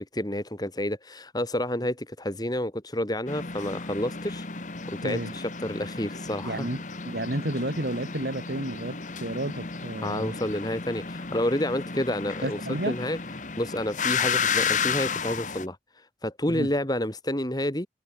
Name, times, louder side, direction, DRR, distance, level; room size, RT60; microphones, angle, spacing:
voice 1, 0.0-4.5 4.9-6.7 10.0-12.6 12.9-13.2 13.6-17.9, left 1 dB, 20° left, 2.8 m, -29 dB
sound 1, 3.3-15.7, left 6 dB, 45° left, 1.5 m, -32 dB
voice 2, 5.0-5.3 6.4-10.4 12.4-12.9 16.5-16.7, right 1 dB, 60° right, 2.3 m, -31 dB
head